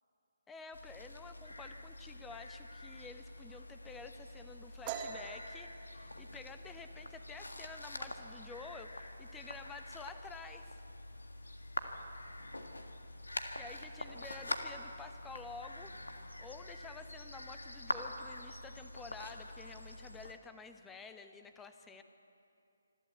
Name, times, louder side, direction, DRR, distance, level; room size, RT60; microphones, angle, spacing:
voice 1, 0.5-10.8 13.5-15.9 16.4-22.0, left 4 dB, 10° left, 7 dB, 1.0 m, -50 dB
sound 1, 0.7-20.3, left 1 dB, 85° left, 1.7 m, -45 dB
sound 2, 4.8-8.3 8.6-8.9 9.3-9.8 10.1-10.9, right 7 dB, 25° right, 1.8 m, -46 dB
26.0 x 12.5 x 8.2 m, 2.7 s
figure-of-eight pair, 145°, 0 cm